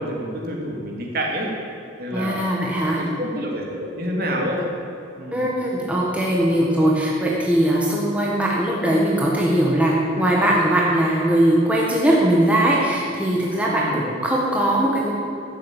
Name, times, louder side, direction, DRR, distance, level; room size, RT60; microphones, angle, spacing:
voice 1, 0.0-1.5 2.0-2.5 2.9-4.6 5.2-5.4 13.7-14.0, equal, 50° right, -1 dB, 2.8 m, -27 dB
voice 2, 2.1-3.0 5.3-15.1, right 1 dB, 5° right, -4 dB, 1.6 m, -20 dB
14.0 x 7.8 x 9.0 m, 2.8 s
head